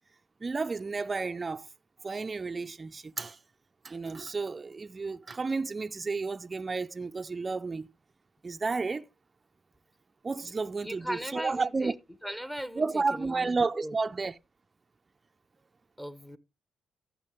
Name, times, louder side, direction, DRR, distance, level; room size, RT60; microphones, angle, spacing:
voice 1, 0.4-1.7 2.0-3.4 3.8-7.9 8.4-9.1 10.2-11.9 12.8-14.4, right 4 dB, 35° right, 0.4 m, -32 dB
voice 2, 10.8-11.9 12.2-13.5 13.7-14.0 16.0-16.4, equal, 10° left, 0.9 m, -38 dB
14.5 x 5.9 x 3.4 m
supercardioid pair, 50°, 0 cm